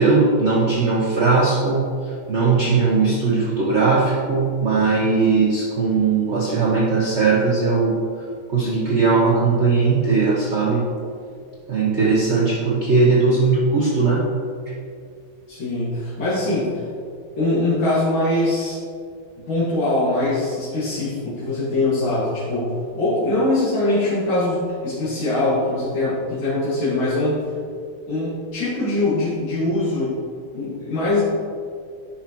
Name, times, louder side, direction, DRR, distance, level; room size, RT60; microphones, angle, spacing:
voice 1, 0.0-8.0 8.5-10.9 11.7-14.3, right 4 dB, 50° right, -3 dB, 0.8 m, -19 dB
voice 2, 15.5-16.8 17.4-18.8 19.4-27.4 28.1-30.1 30.5-31.2, left 2 dB, 70° left, -11 dB, 2.6 m, -22 dB
10.0 x 5.9 x 2.9 m, 2.3 s
omnidirectional pair, 2.2 m